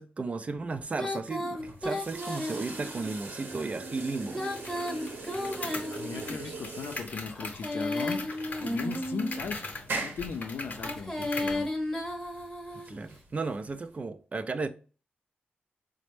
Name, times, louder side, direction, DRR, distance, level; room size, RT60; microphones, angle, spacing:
voice 1, 0.0-4.5 12.9-14.7, right 3 dB, 40° right, 0.3 m, -34 dB
Female singing, 0.9-3.1 4.2-6.5 7.3-9.5 10.7-13.0, left 1 dB, 10° left, 0.7 m, -34 dB
sound 1, 1.5-14.0, right 3 dB, 75° right, 0.8 m, -42 dB
sound 2, 4.6-11.7, left 3 dB, 50° left, 0.8 m, -41 dB
voice 2, 5.9-8.3 8.6-9.7 10.0-11.7, left 5 dB, 85° left, 0.5 m, -37 dB
4.1 x 2.1 x 3.1 m
wide cardioid pair, 90°, 4 cm